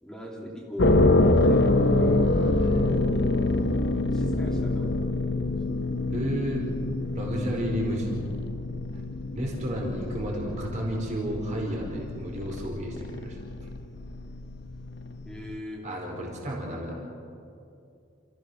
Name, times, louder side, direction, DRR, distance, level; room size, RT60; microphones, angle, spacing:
voice 1, 0.0-1.0 1.4-1.9 4.0-5.0 5.7-5.8 15.3-15.8, left 1 dB, 5° left, -1 dB, 2.6 m, -40 dB
sound 1, 0.8-15.6, left 2 dB, 55° left, 0.9 m, -26 dB
voice 2, 2.0-3.1 6.1-6.6 7.1-8.2 9.3-13.4 15.8-17.0, equal, 35° right, -2 dB, 4.9 m, -32 dB
29.0 x 15.0 x 6.4 m, 2.5 s
head